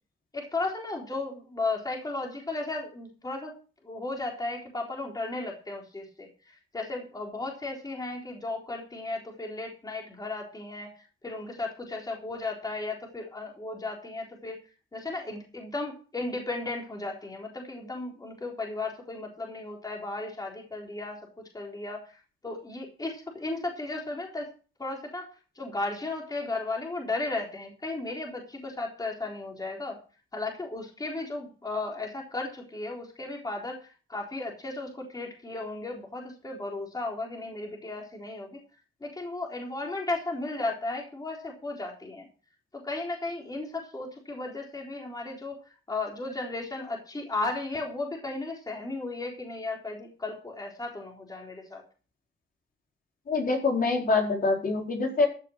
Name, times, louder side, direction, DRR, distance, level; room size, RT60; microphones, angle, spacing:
voice 1, 0.3-3.5 3.8-10.9 11.2-14.6 14.9-21.2 21.5-22.1 22.4-24.5 24.8-25.3 25.6-30.0 30.3-38.6 39.0-42.3 42.7-45.6 45.9-51.8, left 2 dB, 20° left, 0 dB, 3.9 m, -35 dB
voice 2, 53.3-55.3, left 3 dB, 45° left, 0 dB, 4.4 m, -25 dB
14.5 x 6.7 x 6.5 m, 0.37 s
cardioid pair, 90°, 20 cm